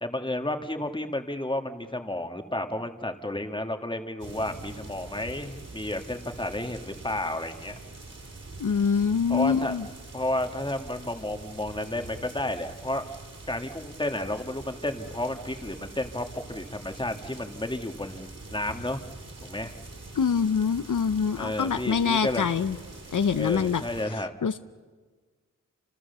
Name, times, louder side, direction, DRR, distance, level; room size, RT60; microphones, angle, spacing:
voice 1, 0.0-7.7 9.3-9.8 10.1-13.1 13.5-19.0 19.4-19.7 21.4-22.5 23.3-24.3, left 1 dB, 15° left, 6 dB, 1.7 m, -32 dB
sound 1, 4.2-24.1, right 2 dB, 50° right, 4.7 m, -44 dB
voice 2, 8.6-9.9 20.1-22.8 23.1-23.8 24.4-24.6, left 6 dB, 70° left, 10 dB, 0.8 m, -25 dB
29.0 x 26.5 x 6.9 m, 1.5 s
wide cardioid pair, 90°, 32 cm